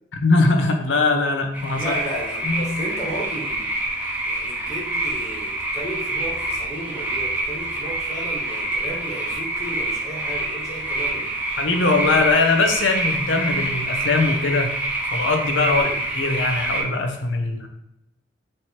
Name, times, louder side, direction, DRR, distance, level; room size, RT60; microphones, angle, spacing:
voice 1, 0.1-1.9 2.4-2.8 11.6-14.8 15.1-15.9 16.1-17.7, left 3 dB, 80° left, 4 dB, 0.6 m, -21 dB
sound 1, 1.5-16.8, right 2 dB, 10° right, 0.6 m, -26 dB
voice 2, 1.7-3.6 4.3-11.3 15.7-16.0, right 1 dB, 15° left, -4 dB, 1.1 m, -33 dB
3.2 x 2.8 x 4.3 m, 0.83 s
head